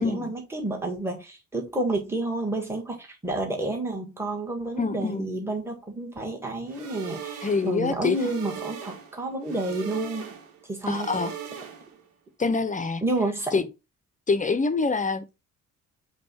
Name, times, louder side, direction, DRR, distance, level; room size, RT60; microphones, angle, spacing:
voice 1, 0.0-10.3 10.7-11.3 13.0-13.7, right 2 dB, 5° right, 1.5 m, -30 dB
voice 2, 4.8-5.3 7.4-8.2 10.9-11.3 12.4-13.0 13.5-13.6 14.3-15.3, left 4 dB, 20° left, 0.6 m, -25 dB
sound 1, 6.7-12.1, right 7 dB, 80° right, 1.0 m, -39 dB
5.2 x 2.3 x 4.4 m
hypercardioid pair, 50°, 37 cm